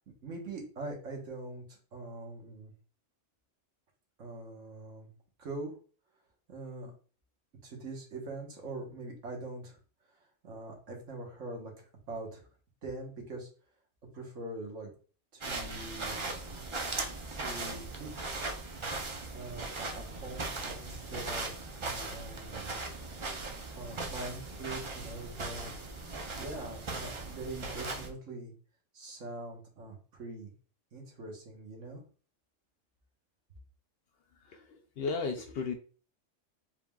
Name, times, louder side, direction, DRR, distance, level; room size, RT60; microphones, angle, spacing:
voice 1, 0.2-2.7 4.2-5.1 5.4-5.7 6.5-6.9 7.6-9.8 10.4-11.7 12.1-12.5 12.8-13.5 14.1-14.9 15.3-16.2 17.3-18.4 19.3-21.5 21.8-22.8 23.7-25.7 26.3-28.5 28.9-30.5 30.9-32.0, right 2 dB, 75° right, 0 dB, 1.6 m, -43 dB
sound 1, 15.4-28.1, right 3 dB, 35° right, 0.5 m, -39 dB
voice 2, 34.5-35.7, left 4 dB, 65° left, 5 dB, 0.7 m, -35 dB
4.6 x 3.6 x 2.3 m, 0.39 s
omnidirectional pair, 1.3 m